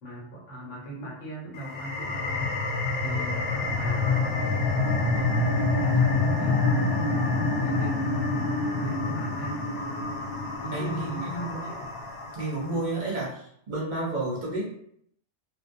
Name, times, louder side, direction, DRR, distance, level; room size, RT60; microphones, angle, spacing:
voice 1, 0.0-2.6 3.0-4.4 4.9-7.0 7.6-8.0 8.8-9.6 10.6-11.9, right 2 dB, 85° left, -4 dB, 1.3 m, -39 dB
sound 1, 1.5-12.7, left 3 dB, 60° left, 0.7 m, -27 dB
voice 2, 10.7-11.6 12.3-14.7, right 2 dB, 50° right, -4 dB, 0.7 m, -31 dB
2.4 x 2.2 x 2.6 m, 0.69 s
omnidirectional pair, 1.2 m